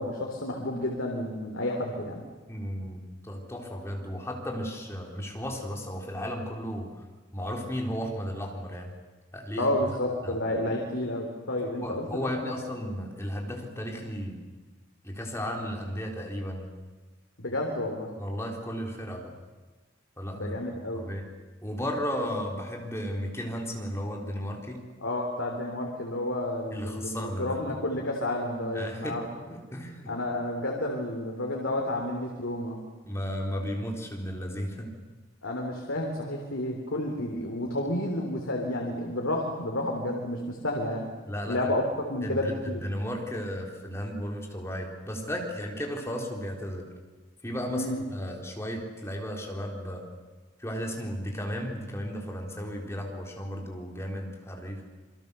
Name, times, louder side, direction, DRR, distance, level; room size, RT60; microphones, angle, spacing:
voice 1, 0.0-2.2 9.6-12.5 17.4-18.1 20.3-21.1 25.0-29.2 30.1-32.8 35.4-41.1 41.5-41.8 42.1-42.8 47.7-48.0, left 1 dB, 80° left, 0 dB, 3.6 m, -31 dB
voice 2, 2.5-7.0 7.3-8.9 9.3-9.7 10.2-10.4 11.8-14.4 15.0-16.7 18.2-19.4 20.2-20.6 20.9-21.3 21.6-24.8 26.7-27.6 28.7-29.2 29.4-30.1 33.1-34.9 41.3-41.7 42.2-46.9 47.4-50.1 50.6-54.8, equal, 15° left, 0 dB, 3.9 m, -34 dB
28.0 x 23.0 x 6.9 m, 1.3 s
head